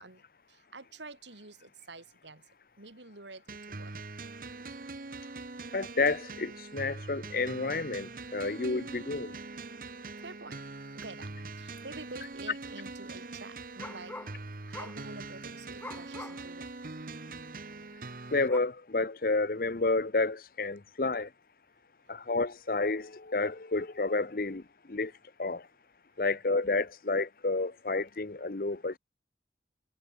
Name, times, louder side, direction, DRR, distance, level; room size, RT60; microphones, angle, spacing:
voice 1, 0.0-2.5 2.8-4.0 9.8-10.6 10.9-14.2 14.7-16.7 22.1-22.2, right 3 dB, 90° right, 3.9 m, -48 dB
sound 1, 3.5-18.5, right 3 dB, 50° right, 1.1 m, -43 dB
voice 2, 5.7-9.3 18.3-21.3 22.1-24.6 24.9-25.1 25.4-25.6 26.2-29.0, left 3 dB, 50° left, 0.8 m, -30 dB
sound 2, 11.8-11.9 12.2-12.6 13.8-14.4 14.7-15.1 15.8-16.5 17.0-17.1 18.5-18.6, left 2 dB, 10° left, 1.6 m, -44 dB
head